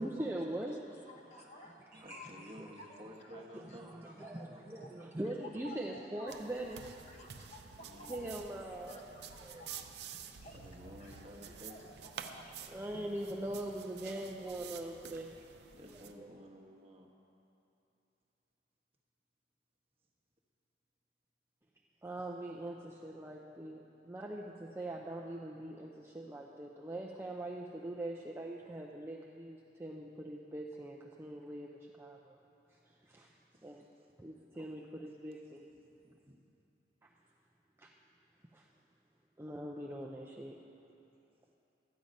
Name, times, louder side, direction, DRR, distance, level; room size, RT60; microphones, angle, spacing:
voice 1, 0.0-1.1 1.9-2.7 3.5-6.8 8.1-9.6 12.7-15.4 16.2-16.3 22.0-31.7 32.0-32.4 33.0-33.3 33.6-33.8 34.2-35.6 37.8-37.9 38.5-38.7 39.4-40.6, right 1 dB, 15° right, -2 dB, 0.5 m, -42 dB
voice 2, 0.7-3.0 3.3-3.4 3.7-8.4 8.8-12.6, left 1 dB, 40° left, 0 dB, 1.1 m, -54 dB
voice 3, 2.0-3.9 7.8-8.2 10.4-11.8 15.7-17.1 33.5-34.1 36.0-36.4, equal, 35° right, -1 dB, 1.1 m, -53 dB
sound 1, 6.3-16.1, right 7 dB, 65° right, 0.6 m, -50 dB
13.0 x 8.7 x 5.2 m, 2.8 s
head